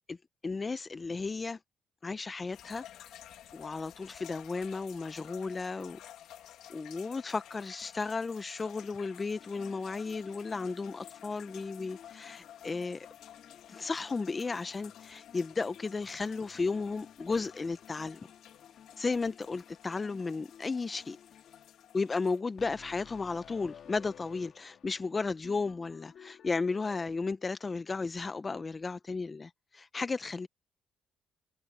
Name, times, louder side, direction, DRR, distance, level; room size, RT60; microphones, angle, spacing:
voice 1, 0.4-1.6 2.0-2.8 3.5-6.0 6.7-13.1 13.7-18.3 19.0-21.2 21.9-30.5, left 4 dB, 30° left, 0.5 m, -34 dB
sound 1, 2.5-22.4, left 11 dB, 85° left, 1.8 m, -53 dB
sound 2, 9.3-27.1, left 9 dB, 65° left, 1.7 m, -56 dB
cardioid pair, 90°, 0 cm